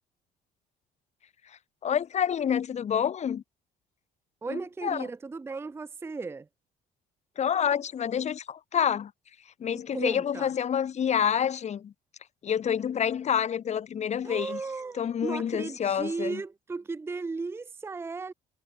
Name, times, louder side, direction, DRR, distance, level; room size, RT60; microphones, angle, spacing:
voice 1, 1.8-3.4 4.5-5.1 7.4-9.1 9.6-11.9 12.4-14.6 15.0-16.4, left 8 dB, 40° left, 1.4 m, -28 dB
voice 2, 4.4-6.5 9.7-10.5 14.2-18.3, right 4 dB, 15° right, 0.6 m, -35 dB
cardioid pair, 110°, 17 cm